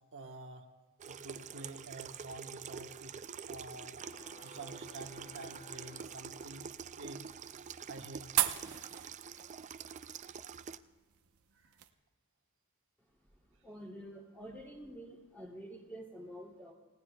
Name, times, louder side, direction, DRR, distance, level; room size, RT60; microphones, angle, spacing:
voice 1, 0.1-0.7 1.1-3.2 3.5-3.9 4.4-6.7 7.0-7.3 7.9-8.3 11.5-11.8, right 2 dB, 60° right, 2 dB, 1.2 m, -48 dB
Water tap faucet / Sink (filling or washing), 1.0-10.8, right 7 dB, 35° right, 0.4 m, -46 dB
sound 1, 3.6-11.9, right 12 dB, 80° right, 0.8 m, -41 dB
sound 2, 3.9-6.8, left 1 dB, 40° left, 2.9 m, -56 dB
voice 2, 13.3-16.7, equal, 10° left, -1 dB, 2.7 m, -48 dB
29.0 x 17.5 x 2.3 m, 1.4 s
head